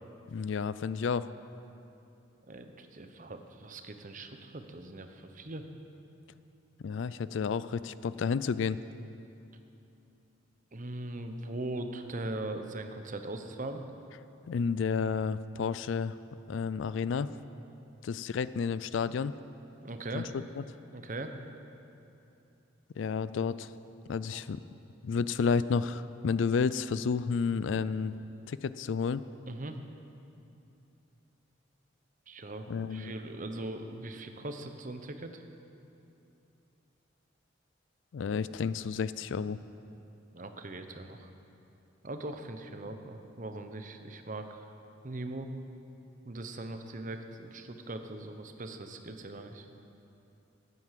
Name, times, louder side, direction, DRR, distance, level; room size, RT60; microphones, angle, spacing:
voice 1, 0.3-1.3 6.8-8.8 14.5-16.1 16.5-17.3 18.0-19.3 20.1-20.2 20.6-20.7 23.0-23.7 24.1-24.6 25.0-28.1 28.5-29.2 32.7-33.1 38.1-39.6, left 5 dB, 70° left, 16 dB, 0.4 m, -31 dB
voice 2, 2.5-5.6 10.7-13.8 19.8-20.3 20.9-21.3 24.3-24.5 29.5-29.8 32.3-35.4 40.3-41.3 42.0-44.6 45.0-45.5 46.2-49.6, right 2 dB, 40° right, 7 dB, 0.9 m, -40 dB
13.0 x 9.6 x 7.5 m, 2.8 s
head